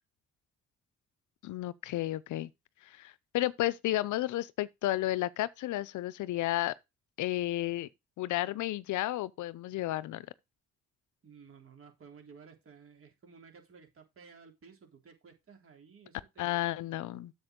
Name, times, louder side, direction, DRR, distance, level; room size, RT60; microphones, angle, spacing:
voice 1, 1.4-2.5 2.8-6.7 7.2-7.9 8.2-10.3 16.4-17.3, left 15 dB, 80° left, 0.6 m, -32 dB
voice 2, 11.2-16.6, right 5 dB, 45° right, 3.4 m, -55 dB
8.0 x 7.1 x 3.7 m
cardioid pair, 90°, 30 cm